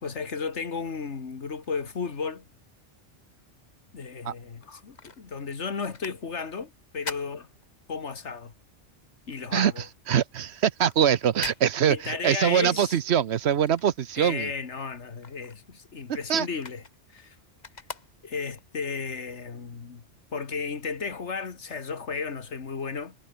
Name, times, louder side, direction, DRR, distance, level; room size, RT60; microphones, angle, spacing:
voice 1, 0.0-2.4 3.9-7.5 7.9-8.5 9.3-9.9 11.9-13.0 14.2-16.8 17.1-17.4 18.2-20.0 20.3-23.2, left 5 dB, 75° left, 2.1 m, -34 dB
sound 1, 4.6-8.2 8.6-14.6 14.9-18.7 19.2-19.3, left 4 dB, 40° left, 1.3 m, -44 dB
voice 2, 10.1-14.5 16.3-16.5, right 9 dB, 65° right, 1.0 m, -23 dB
omnidirectional pair, 1.2 m